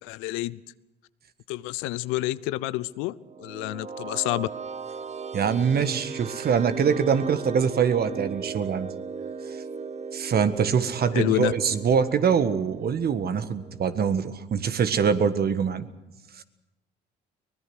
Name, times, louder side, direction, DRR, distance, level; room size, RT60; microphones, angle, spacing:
voice 1, 0.0-0.6 1.5-4.5 11.1-11.5, left 18 dB, 75° left, 18 dB, 0.7 m, -28 dB
sound 1, 3.1-13.9, right 5 dB, 30° right, 0.9 m, -37 dB
voice 2, 5.3-8.9 10.1-15.9 16.4-16.5, right 6 dB, 50° right, 10 dB, 1.6 m, -24 dB
23.5 x 20.0 x 6.3 m, 0.97 s
hypercardioid pair, 60°, 21 cm